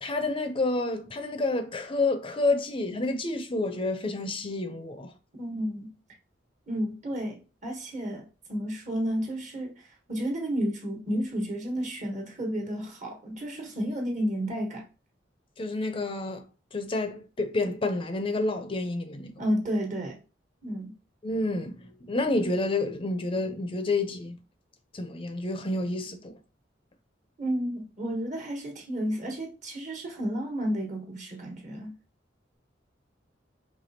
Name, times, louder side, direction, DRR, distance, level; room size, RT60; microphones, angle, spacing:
voice 1, 0.0-5.1 15.6-16.4 16.7-19.5 21.2-24.4 24.9-26.4, left 2 dB, 30° left, 0.5 m, -29 dB
voice 2, 5.4-5.9 6.7-9.8 10.1-14.8 19.4-20.2 20.6-20.9 27.4-31.9, equal, 40° right, 1.4 m, -31 dB
5.1 x 3.3 x 2.7 m
head